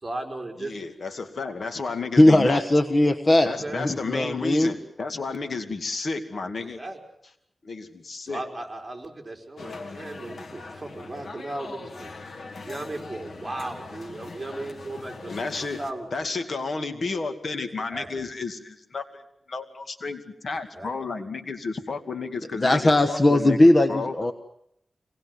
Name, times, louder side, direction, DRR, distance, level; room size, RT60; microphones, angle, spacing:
voice 1, 0.0-0.7 3.4-3.9 6.6-7.0 8.2-12.2 12.6-15.4 15.8-16.1 17.9-18.3 20.7-20.9, right 2 dB, 20° right, 2 dB, 4.3 m, -36 dB
voice 2, 0.6-2.9 3.4-6.8 7.6-8.4 15.3-15.8 16.1-19.2 19.5-24.1, left 4 dB, 65° left, 7 dB, 2.3 m, -32 dB
voice 3, 2.2-4.7 22.6-24.3, left 1 dB, 35° left, 7 dB, 1.3 m, -19 dB
sound 1, 9.6-15.9, left 3 dB, 80° left, 2.5 m, -41 dB
25.5 x 20.0 x 7.9 m, 0.74 s
wide cardioid pair, 95°, 0 cm